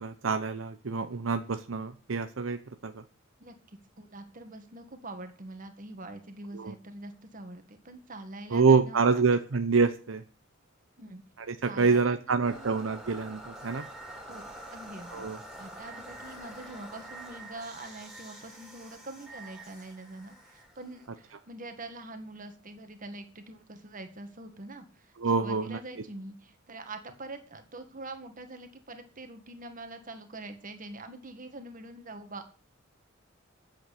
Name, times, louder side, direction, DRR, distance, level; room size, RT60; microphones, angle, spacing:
voice 1, 0.0-3.0 6.5-6.7 8.5-10.2 11.5-13.8 15.1-15.4 25.2-25.8, right 4 dB, 70° right, 9 dB, 0.7 m, -26 dB
voice 2, 3.4-9.2 11.0-11.2 11.6-12.8 14.3-14.4 14.7-15.3 15.6-32.5, right 2 dB, 40° right, 7 dB, 1.9 m, -44 dB
sound 1, 12.5-21.5, right 1 dB, 5° right, 2.8 m, -46 dB
9.2 x 7.7 x 8.4 m, 0.40 s
head